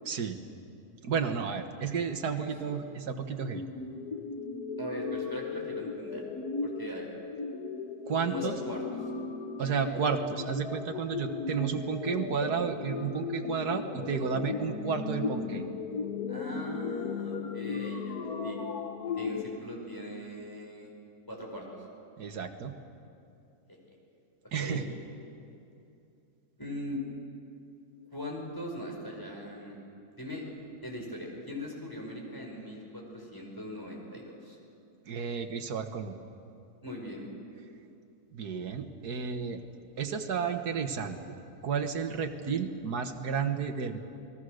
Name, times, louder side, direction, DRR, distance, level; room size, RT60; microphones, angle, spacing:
voice 1, 0.1-0.4 1.0-3.6 8.1-8.6 9.6-15.6 22.2-22.8 24.5-24.8 35.1-36.2 38.3-39.6 40.0-41.2 41.6-44.0, right 6 dB, 80° right, 5 dB, 1.9 m, -32 dB
voice 2, 2.4-2.7 4.8-6.2 6.6-7.1 8.2-8.8 9.8-10.0 16.3-18.6 19.1-20.9 21.3-21.7 24.6-24.8 26.6-27.0 28.1-29.7 30.1-30.4 30.8-34.6 36.8-37.3, left 1 dB, 15° left, -1 dB, 5.1 m, -40 dB
sound 1, 3.4-19.4, left 4 dB, 75° left, 1.7 m, -36 dB
29.0 x 20.5 x 6.5 m, 2.7 s
omnidirectional pair, 1.7 m